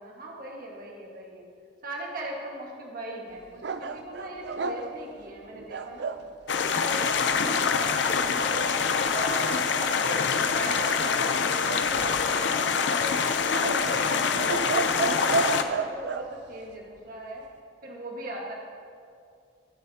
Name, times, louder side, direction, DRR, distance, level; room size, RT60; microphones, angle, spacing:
voice 1, 0.0-1.5 1.8-6.1 6.5-8.8 9.0-13.3 13.7-17.5 17.8-18.5, right 1 dB, 55° right, -2 dB, 1.6 m, -39 dB
sound 1, 3.6-6.3 11.6-12.5 13.5-16.3, right 3 dB, 70° right, 0.5 m, -31 dB
sound 2, 6.5-15.6, left 5 dB, 85° left, 0.6 m, -25 dB
20.5 x 7.7 x 2.8 m, 2.4 s
head